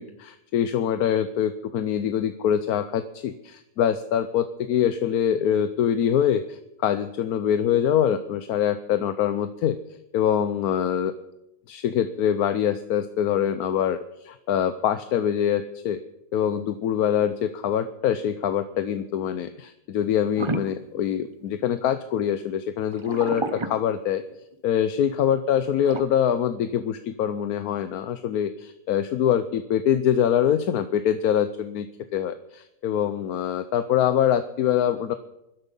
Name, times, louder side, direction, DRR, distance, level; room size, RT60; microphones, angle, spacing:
voice 1, 0.0-9.8 10.1-11.1 11.7-14.0 14.5-16.0 16.3-24.2 24.6-31.9 32.1-35.1, left 9 dB, 75° left, 11 dB, 1.2 m, -24 dB
sound 1, 20.4-21.8 22.9-24.5 25.8-26.0, right 3 dB, 30° right, 0.6 m, -31 dB
21.0 x 12.0 x 5.5 m, 0.88 s
omnidirectional pair, 1.7 m